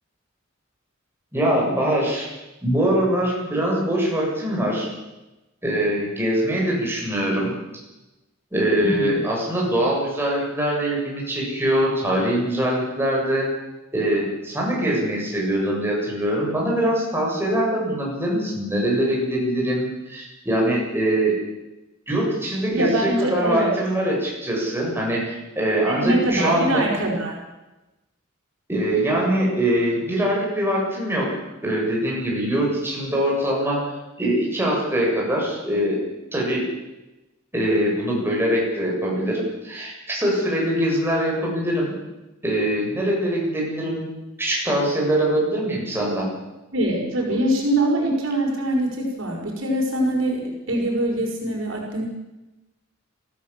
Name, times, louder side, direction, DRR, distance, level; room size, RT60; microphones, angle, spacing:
voice 1, 1.3-2.3 2.6-4.9 5.6-7.5 8.5-13.5 13.9-21.3 22.1-26.8 28.7-31.3 31.6-33.8 34.2-36.0 36.3-36.6 37.5-41.9 42.4-44.0 44.4-46.3, right 1 dB, 10° right, -3 dB, 7.6 m, -23 dB
voice 2, 8.8-9.2 22.7-23.8 25.8-27.4 46.7-52.0, right 1 dB, 75° right, 0 dB, 5.6 m, -23 dB
24.0 x 15.5 x 7.6 m, 1.0 s
head